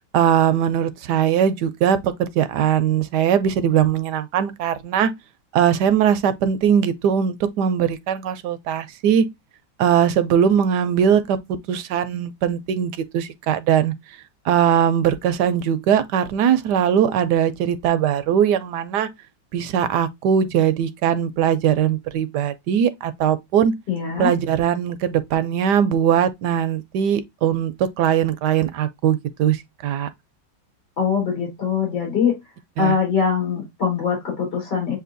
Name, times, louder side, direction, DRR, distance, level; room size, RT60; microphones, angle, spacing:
voice 1, 0.0-5.1 5.5-9.2 9.8-11.4 11.7-13.9 14.4-19.1 19.5-23.7 24.2-30.1 32.8-33.0, right 9 dB, 70° right, 1.1 m, -20 dB
voice 2, 23.9-24.3 31.0-32.4 32.8-35.0, left 6 dB, 65° left, 3.7 m, -22 dB
7.5 x 2.7 x 2.6 m
omnidirectional pair, 2.0 m